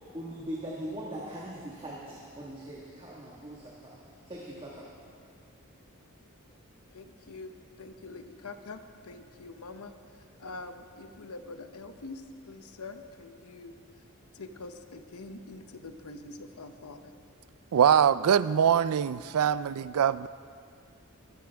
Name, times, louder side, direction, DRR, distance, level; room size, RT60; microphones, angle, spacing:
voice 1, 0.1-4.0 4.3-4.8, right 1 dB, 25° right, -5 dB, 1.6 m, -40 dB
voice 2, 6.9-7.5 7.8-9.9 10.4-14.0 14.3-17.3, left 3 dB, 85° left, 8 dB, 0.9 m, -45 dB
voice 3, 17.7-20.3, right 8 dB, 80° right, 17 dB, 0.4 m, -23 dB
21.5 x 13.0 x 3.5 m, 2.4 s
head